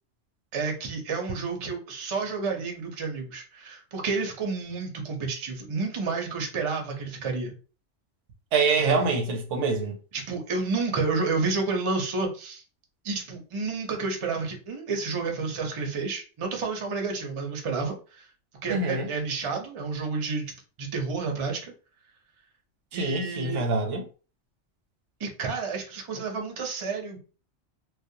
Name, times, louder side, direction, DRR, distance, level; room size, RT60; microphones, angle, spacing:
voice 1, 0.5-7.5 8.8-9.1 10.1-12.6 13.0-18.3 18.6-20.5 20.8-21.7 22.9-23.6 25.2-27.2, right 4 dB, 40° right, 0.4 m, -30 dB
voice 2, 8.5-9.9 18.7-19.1 22.9-24.0, right 4 dB, 80° right, 0.9 m, -25 dB
2.3 x 2.1 x 2.7 m
omnidirectional pair, 1.2 m